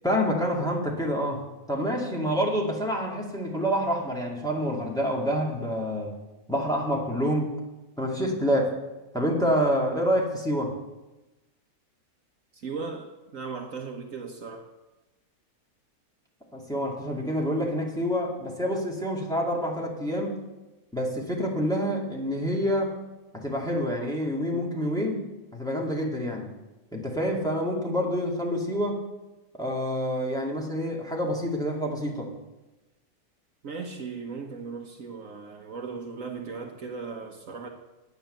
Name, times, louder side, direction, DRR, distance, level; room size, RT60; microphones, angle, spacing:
voice 1, 0.0-1.4 1.7-6.1 6.5-7.5 8.0-8.7 9.1-10.7 16.5-20.4 20.9-23.0 23.3-25.2 25.5-26.5 26.9-29.0 29.6-32.3, equal, ahead, -2 dB, 2.2 m, -27 dB
voice 2, 12.5-14.7 24.8-24.9 33.6-37.7, right 5 dB, 60° right, 3 dB, 1.4 m, -37 dB
11.0 x 8.9 x 6.6 m, 1.0 s
omnidirectional pair, 1.6 m